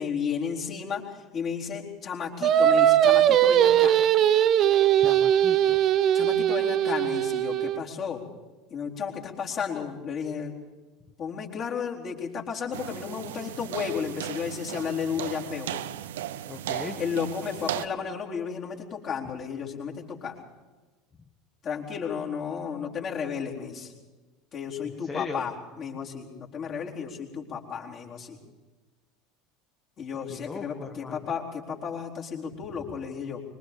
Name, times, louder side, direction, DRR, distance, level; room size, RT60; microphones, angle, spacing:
voice 1, 0.0-4.0 6.1-8.2 8.7-10.5 11.2-15.8 17.0-20.5 21.6-23.9 24.5-28.4 30.0-33.4, left 6 dB, 40° left, -2 dB, 4.3 m, -33 dB
Singing, 2.4-7.8, right 10 dB, 40° right, 0.9 m, -20 dB
voice 2, 5.0-5.8 16.5-17.0 25.0-25.4 30.3-31.2, left 5 dB, 25° left, 2 dB, 1.8 m, -38 dB
sound 1, 12.7-17.9, right 12 dB, 65° right, 0.7 m, -36 dB
25.0 x 23.0 x 5.3 m, 1.3 s
figure-of-eight pair, 70°, 0 cm